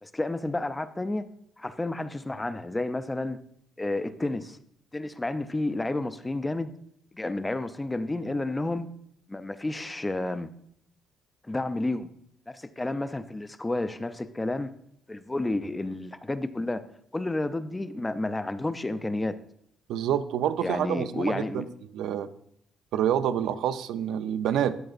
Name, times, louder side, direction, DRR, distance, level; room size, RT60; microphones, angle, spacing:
voice 1, 0.0-1.3 1.6-3.4 3.8-4.6 4.9-6.7 7.1-8.9 9.3-10.5 11.4-12.1 12.5-14.7 15.1-16.8 17.1-19.4 20.6-21.7, left 2 dB, 10° left, 12 dB, 0.4 m, -31 dB
voice 2, 19.9-21.6 21.9-22.3 22.9-24.8, right 10 dB, 80° right, 10 dB, 0.5 m, -27 dB
12.5 x 7.7 x 2.4 m, 0.72 s
cardioid pair, 135°, 0 cm